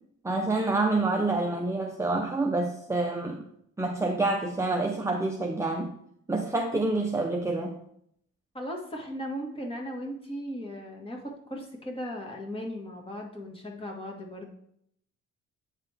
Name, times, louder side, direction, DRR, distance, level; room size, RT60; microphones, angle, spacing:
voice 1, 0.2-3.4 3.8-5.9 6.3-7.8, right 2 dB, 10° right, 1 dB, 0.7 m, -27 dB
voice 2, 8.5-14.5, equal, 20° left, 0 dB, 1.9 m, -37 dB
9.0 x 4.1 x 3.5 m, 0.70 s
cardioid pair, 90°, 30 cm